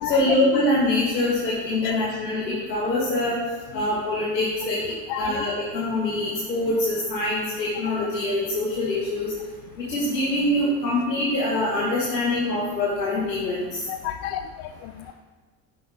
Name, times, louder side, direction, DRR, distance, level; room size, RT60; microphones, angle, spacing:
voice 1, 0.1-3.4 3.7-4.8 5.2-9.3 9.9-13.6, left 1 dB, 90° left, -6 dB, 1.8 m, -24 dB
voice 2, 5.1-5.4 13.9-15.1, left 10 dB, 55° left, 9 dB, 0.6 m, -32 dB
9.7 x 6.9 x 3.5 m, 1.4 s
hypercardioid pair, 65°, 49 cm